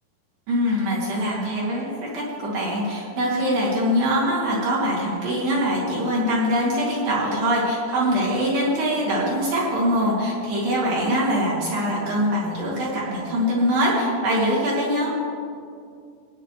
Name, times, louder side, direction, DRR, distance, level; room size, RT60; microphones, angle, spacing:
voice 1, 0.5-15.1, equal, 55° right, -7 dB, 4.3 m, -23 dB
17.0 x 10.0 x 3.3 m, 2.3 s
omnidirectional pair, 5.1 m